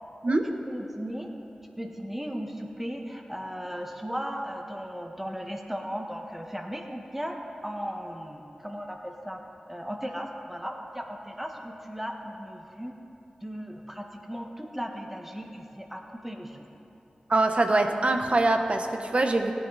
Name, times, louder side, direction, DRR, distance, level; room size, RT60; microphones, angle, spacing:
voice 1, 0.7-1.3 1.8-9.4 9.7-12.9 13.4-16.6, equal, 10° right, 2 dB, 1.5 m, -36 dB
voice 2, 17.3-19.5, right 2 dB, 50° right, 5 dB, 1.0 m, -23 dB
17.0 x 9.8 x 4.1 m, 2.9 s
cardioid pair, 40°, 3 cm